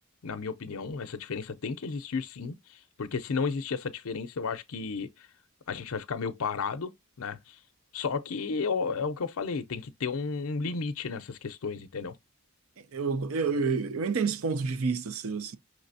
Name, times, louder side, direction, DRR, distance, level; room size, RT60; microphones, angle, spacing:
voice 1, 0.2-5.3 5.7-7.6 7.9-12.1, left 5 dB, 65° left, 0.5 m, -33 dB
voice 2, 12.8-15.6, right 4 dB, 65° right, 0.5 m, -29 dB
5.7 x 3.2 x 2.6 m
head